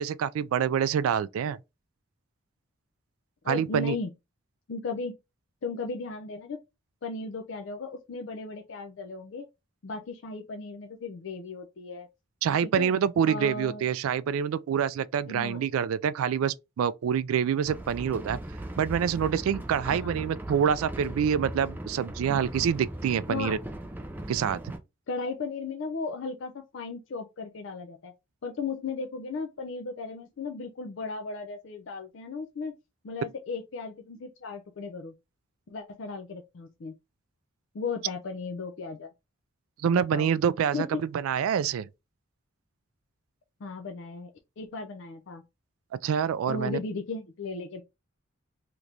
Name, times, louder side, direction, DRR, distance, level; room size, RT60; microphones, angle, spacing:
voice 1, 0.0-1.6 3.5-4.0 12.4-18.4 18.8-23.6 24.3-24.6 39.8-41.9 46.0-46.8, right 8 dB, 90° right, 0.3 m, -26 dB
voice 2, 3.4-4.1 4.7-5.1 5.6-6.6 7.0-9.5 9.8-12.1 12.8-12.9 13.3-13.9 15.3-15.7 19.9-20.1 23.3-23.6 25.1-28.1 28.4-32.7 33.0-35.1 35.7-36.9 37.7-39.1 39.8-40.3 40.7-41.0 43.6-44.3 44.6-45.4 46.4-47.8, left 4 dB, 60° left, 0.4 m, -36 dB
sound 1, 17.6-24.8, right 1 dB, 10° right, 0.4 m, -38 dB
2.9 x 2.5 x 3.3 m
head